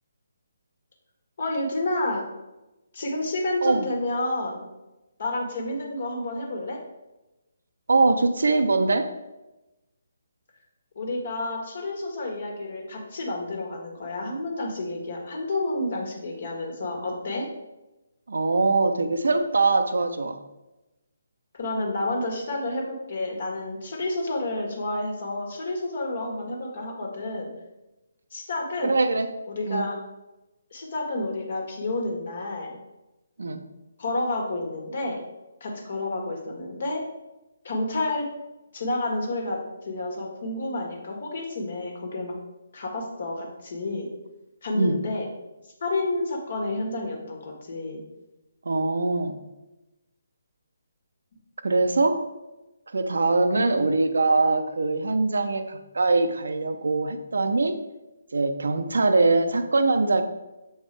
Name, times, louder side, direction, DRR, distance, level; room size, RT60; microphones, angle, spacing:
voice 1, 1.4-2.2 2.9-4.6 5.2-6.8 10.9-17.5 21.5-27.5 28.3-28.9 29.5-29.9 30.7-32.8 34.0-35.2 35.6-37.0 37.6-38.3 38.7-39.6 39.8-42.3 42.7-44.1 44.6-45.3 45.8-48.0 53.6-53.8, left 2 dB, 55° left, 1 dB, 1.5 m, -30 dB
voice 2, 7.9-9.1 18.3-20.4 28.8-29.3 29.7-29.8 33.4-33.6 44.7-45.0 48.6-49.4 51.6-52.2 52.9-57.8 58.3-60.2, right 3 dB, 70° right, 9 dB, 0.6 m, -22 dB
6.9 x 4.3 x 3.4 m, 1.0 s
figure-of-eight pair, 145°, 0 cm